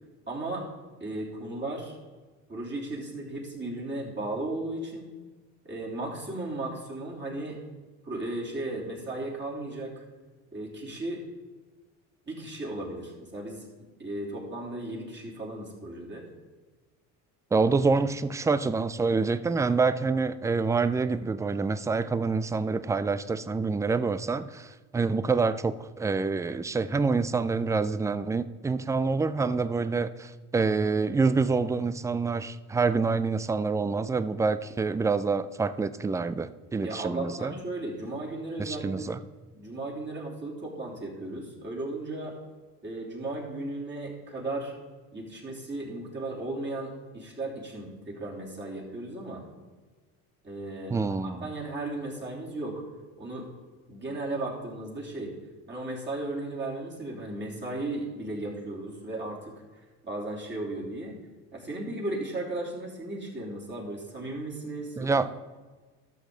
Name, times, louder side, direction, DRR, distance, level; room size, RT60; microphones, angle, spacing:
voice 1, 0.3-0.7 1.0-2.0 2.5-5.1 5.6-7.6 8.0-10.0 10.5-11.2 12.3-13.6 14.0-16.3 36.8-39.0 39.5-42.4 42.8-44.7 45.1-49.4 50.4-52.8 53.2-53.5 53.9-55.4 55.7-61.2 61.5-65.1, right 2 dB, 25° right, -3 dB, 3.4 m, -35 dB
voice 2, 17.5-37.5 38.6-39.2 50.9-51.5 65.0-65.3, right 4 dB, 10° right, 15 dB, 0.3 m, -27 dB
13.0 x 6.5 x 3.9 m, 1.3 s
hypercardioid pair, 75°, 40 cm